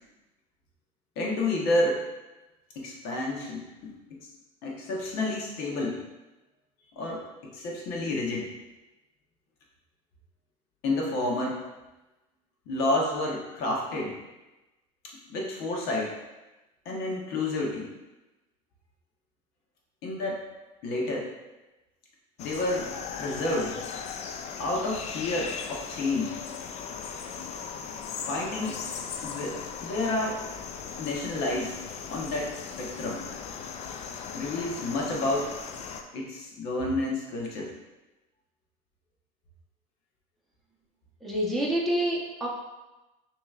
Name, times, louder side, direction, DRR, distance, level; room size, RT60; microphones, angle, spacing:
voice 1, 1.2-2.0 2.7-4.3 4.6-6.0 6.9-7.2 7.5-8.5 10.8-11.6 12.7-14.2 15.3-16.1 16.8-17.9 20.0-20.4 20.8-21.3 22.4-22.9 23.2-23.8 24.6-26.4 28.3-28.8 29.2-30.4 31.0-31.8 32.1-33.2 34.3-35.5 36.1-37.7, left 2 dB, 65° left, -2 dB, 1.2 m, -30 dB
sound 1, 22.4-36.0, left 6 dB, 40° left, 0.4 m, -38 dB
voice 2, 41.2-42.5, right 1 dB, ahead, -5 dB, 1.0 m, -27 dB
5.9 x 3.0 x 2.5 m, 1.1 s
supercardioid pair, 110°, 18 cm